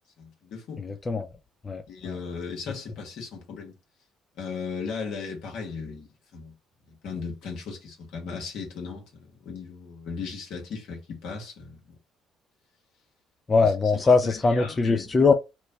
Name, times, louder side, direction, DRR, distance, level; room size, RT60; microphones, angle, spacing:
voice 1, 0.2-0.8 1.9-3.7 4.4-6.6 6.9-11.8 13.6-13.7 14.0-15.1, left 5 dB, 75° left, 1.3 m, -37 dB
voice 2, 0.8-1.3 1.6-2.2 13.5-15.3, left 4 dB, 30° left, 0.4 m, -22 dB
3.0 x 2.2 x 3.8 m
supercardioid pair, 65°, 0 cm